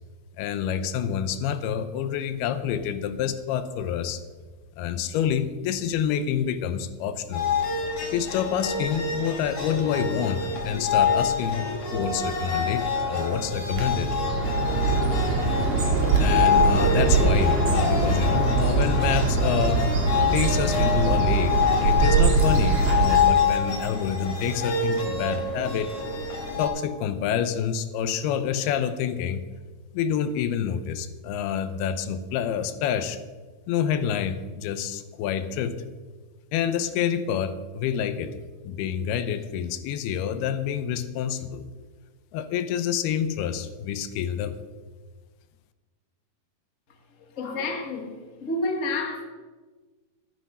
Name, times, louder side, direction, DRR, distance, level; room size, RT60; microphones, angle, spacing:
voice 1, 0.4-4.2 4.8-7.5 8.1-14.2 16.2-19.9 20.3-25.9 26.6-29.4 29.9-33.2 33.7-35.8 36.5-38.4 38.6-41.7 42.3-44.6, left 8 dB, 80° left, 11 dB, 2.7 m, -27 dB
sound 1, 7.3-26.7, left 5 dB, 40° left, 2.7 m, -26 dB
sound 2, 9.7-20.3, equal, 5° right, 3.1 m, -38 dB
Bird, 13.7-23.5, right 4 dB, 55° right, 3.0 m, -23 dB
voice 2, 47.2-48.1 48.4-49.2, left 2 dB, 65° left, 2 dB, 0.7 m, -29 dB
13.5 x 9.9 x 5.5 m, 1.4 s
omnidirectional pair, 4.6 m